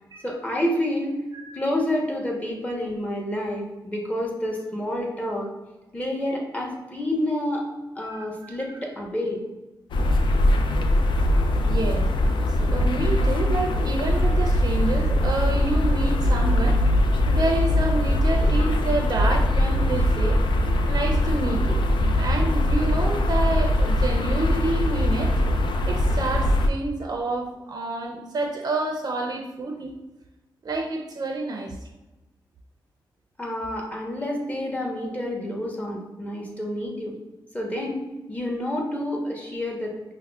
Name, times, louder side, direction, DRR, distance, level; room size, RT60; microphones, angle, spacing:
voice 1, 0.2-1.2 1.5-5.5 5.9-7.6 7.9-9.4 33.4-37.2 37.5-39.9, left 1 dB, 20° left, -1 dB, 1.0 m, -28 dB
voice 2, 8.0-8.5 11.7-12.1 12.5-16.8 17.3-20.4 20.9-21.8 22.2-25.4 25.8-29.9 30.6-31.7, right 2 dB, 50° right, 1 dB, 0.5 m, -28 dB
sound 1, 9.9-26.7, left 1 dB, 75° left, 0.3 m, -21 dB
5.4 x 2.1 x 2.3 m, 1.0 s
cardioid pair, 70°, 8 cm